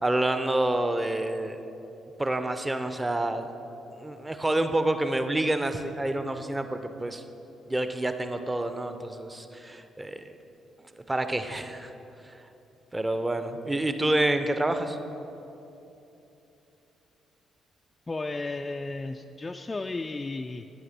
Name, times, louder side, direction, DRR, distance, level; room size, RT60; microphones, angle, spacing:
voice 1, 0.0-1.6 2.2-3.5 3.9-7.2 7.7-10.3 11.1-11.9 12.9-15.0, right 1 dB, 15° right, 8 dB, 0.7 m, -28 dB
voice 2, 18.1-20.7, left 3 dB, 25° left, 4 dB, 0.3 m, -34 dB
11.5 x 9.6 x 4.3 m, 3.0 s
figure-of-eight pair, 40°, 0 cm